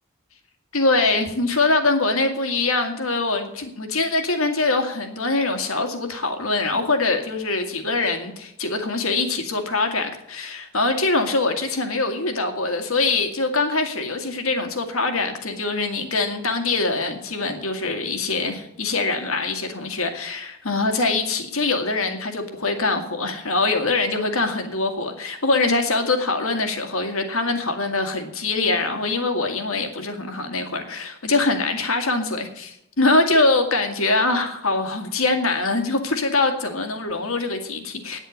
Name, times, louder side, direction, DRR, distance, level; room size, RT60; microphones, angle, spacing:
voice 1, 0.7-38.2, left 3 dB, 85° left, 6 dB, 2.0 m, -23 dB
9.3 x 8.2 x 9.4 m, 0.78 s
head